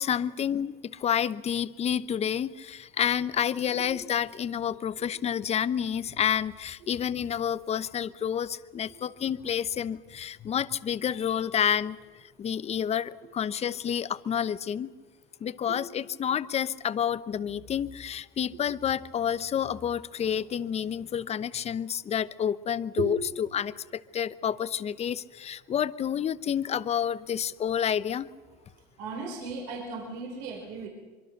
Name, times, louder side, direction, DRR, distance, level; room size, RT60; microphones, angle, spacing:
voice 1, 0.0-12.0 12.4-14.9 15.4-23.2 23.5-28.3, left 8 dB, 30° left, 16 dB, 0.8 m, -29 dB
voice 2, 29.0-30.9, right 5 dB, 75° right, 1 dB, 4.6 m, -35 dB
24.0 x 23.0 x 6.6 m, 1.4 s
supercardioid pair, 105°, 21 cm